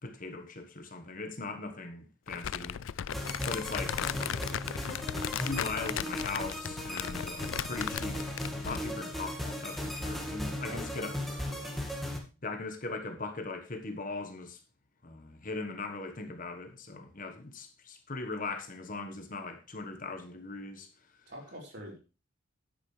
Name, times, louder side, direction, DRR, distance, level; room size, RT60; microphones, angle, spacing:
voice 1, 0.0-2.8 3.4-4.5 5.4-8.3 8.6-11.2 12.4-14.6 15.0-20.9, left 3 dB, 45° left, 1.4 m, -39 dB
Crumpling crinkling, 2.3-8.9, left 9 dB, 75° left, 0.4 m, -36 dB
sound 1, 3.1-12.2, left 1 dB, ahead, 1.9 m, -37 dB
voice 2, 10.4-11.9 21.3-22.0, equal, 55° right, 4.4 m, -46 dB
10.0 x 9.3 x 3.3 m
head